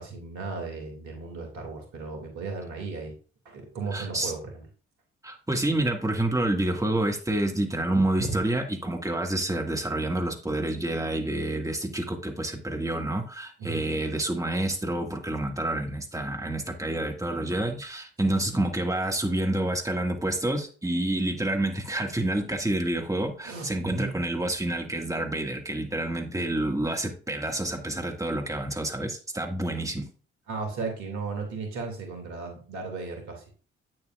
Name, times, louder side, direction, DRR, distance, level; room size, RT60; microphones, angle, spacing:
voice 1, 0.0-3.2 3.5-4.6 8.2-8.4 13.6-13.9 18.2-18.4 23.4-24.2 30.5-33.5, right 4 dB, 70° right, 3 dB, 2.3 m, -35 dB
voice 2, 3.9-4.3 5.2-30.1, right 1 dB, 10° right, 3 dB, 1.8 m, -28 dB
8.7 x 7.7 x 2.4 m, 0.37 s
figure-of-eight pair, 40°, 31 cm